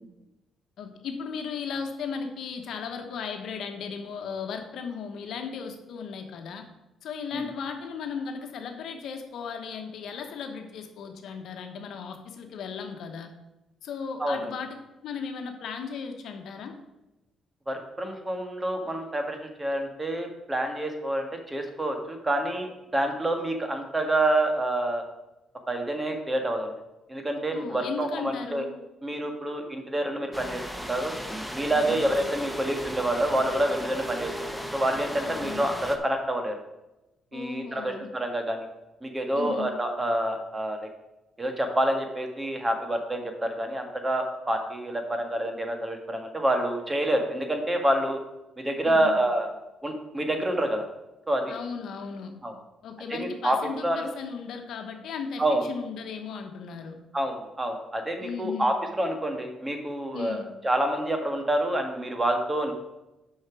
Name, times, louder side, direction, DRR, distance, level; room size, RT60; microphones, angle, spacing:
voice 1, 0.8-6.6 7.0-13.3 13.8-14.8 15.0-16.7 27.5-28.7 31.7-32.0 35.3-35.7 37.3-38.1 39.3-39.7 48.8-49.2 51.5-52.3 52.8-56.9 58.2-58.7 60.1-60.5, left 6 dB, 75° left, 5 dB, 1.1 m, -36 dB
voice 2, 17.7-25.0 25.7-26.7 27.1-28.7 29.0-31.1 31.5-34.3 34.7-36.6 37.3-38.7 39.0-40.9 41.4-48.2 48.6-49.5 49.8-50.8 51.3-51.4 52.4-52.5 53.1-53.6 53.8-54.0 55.4-55.7 57.1-62.7, right 1 dB, 20° right, 4 dB, 1.5 m, -27 dB
sound 1, 30.3-36.0, equal, ahead, 0.9 m, -36 dB
6.4 x 5.8 x 6.0 m, 0.98 s
cardioid pair, 90°, 0 cm